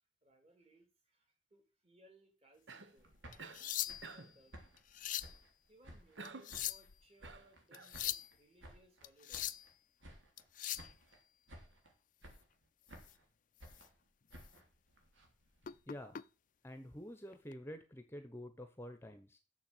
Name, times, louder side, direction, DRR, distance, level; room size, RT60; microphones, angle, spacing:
voice 1, 0.2-4.8 5.7-9.5, right 1 dB, 35° right, 4 dB, 2.9 m, -67 dB
Cough, 2.7-3.0 3.4-3.7 4.0-4.4 6.2-6.6 7.2-8.0, right 3 dB, 70° right, 1.1 m, -51 dB
sound 1, 3.0-6.2 6.5-7.6 7.9-9.7 10.0-10.5 10.8-11.2 11.5-11.9 12.2-13.3 13.6-15.8, right 1 dB, 90° right, 3.3 m, -57 dB
sound 2, 3.3-4.2 4.8-5.4 6.2-7.0 7.7-8.3 9.0-9.7 10.4-10.9 13.0-13.1 13.6-13.9 14.3-14.5 15.6-16.2 17.3-17.5, left 12 dB, 45° left, 0.5 m, -41 dB
voice 2, 15.9-16.2 16.6-19.4, equal, 15° left, 8 dB, 0.9 m, -48 dB
7.1 x 6.9 x 7.8 m, 0.33 s
head